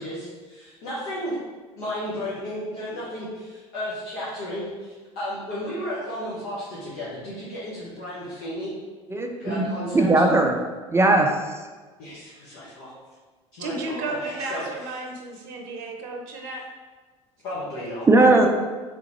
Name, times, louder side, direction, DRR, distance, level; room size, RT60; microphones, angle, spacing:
voice 1, 0.0-1.3 1.8-8.7 9.4-10.2 12.0-12.9 13.5-15.0 16.4-16.6 17.4-18.0, equal, 60° left, -9 dB, 1.3 m, -33 dB
voice 2, 9.1-10.6 10.9-11.3 18.1-18.5, right 2 dB, 15° right, 3 dB, 0.5 m, -18 dB
voice 3, 13.6-16.6, right 2 dB, 55° right, 2 dB, 0.7 m, -33 dB
3.7 x 3.6 x 3.0 m, 1.3 s
hypercardioid pair, 70°, 17 cm